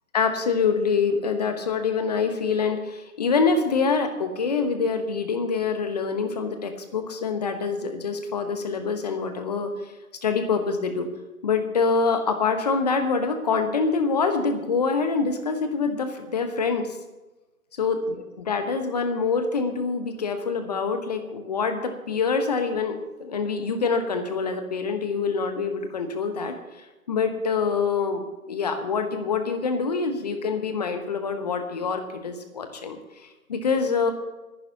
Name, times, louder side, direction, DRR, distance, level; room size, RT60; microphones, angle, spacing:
voice 1, 0.1-9.9 10.2-11.1 11.4-16.9 17.8-26.5 27.1-28.2 28.5-33.0 33.5-34.1, left 5 dB, 25° left, 7 dB, 1.2 m, -25 dB
22.5 x 11.0 x 2.9 m, 1.1 s
figure-of-eight pair, 150°, 44 cm